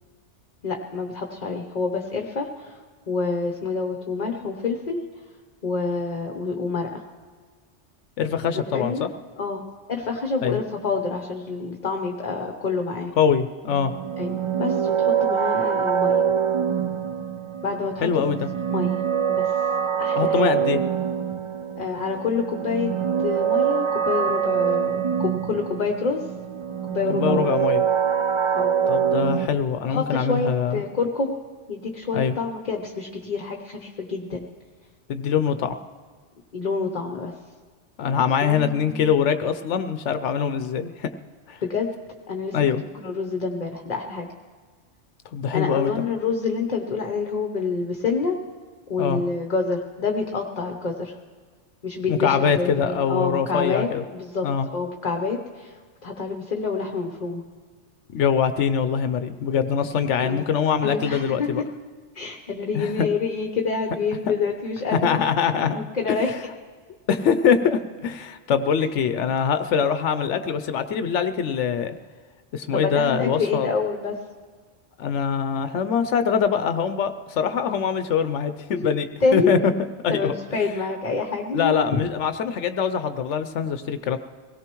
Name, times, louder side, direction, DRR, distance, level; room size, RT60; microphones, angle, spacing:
voice 1, 0.6-5.0 5.6-7.0 8.7-9.1 9.4-13.1 14.2-16.2 17.6-18.4 18.7-19.0 19.3-19.7 20.0-20.5 21.8-22.9 23.2-26.2 26.8-27.6 28.5-28.7 29.8-31.4 31.7-34.5 36.5-37.3 38.4-39.1 41.6-41.9 42.3-44.3 45.5-48.4 48.9-51.2 51.8-57.4 60.2-60.5 60.8-61.6 62.1-65.2 65.7-66.3 72.7-74.2 78.7-78.8 79.2-79.5 80.1-82.0, left 4 dB, 40° left, 3 dB, 0.9 m, -27 dB
voice 2, 8.2-9.1 10.4-10.6 13.2-13.9 18.0-18.5 20.1-20.8 27.1-27.8 28.9-30.8 32.1-32.3 35.1-35.7 38.0-41.1 41.5-41.6 42.5-42.8 45.3-45.9 49.0-49.2 52.1-54.0 54.4-54.7 58.1-61.6 62.7-63.1 64.9-66.2 67.1-72.0 72.5-73.7 75.0-79.1 79.3-79.7 80.0-80.3 81.5-84.2, left 7 dB, 75° left, 9 dB, 0.9 m, -23 dB
sound 1, 13.7-29.5, right 8 dB, 55° right, 0.3 m, -24 dB
24.0 x 17.5 x 3.0 m, 1.5 s
omnidirectional pair, 1.2 m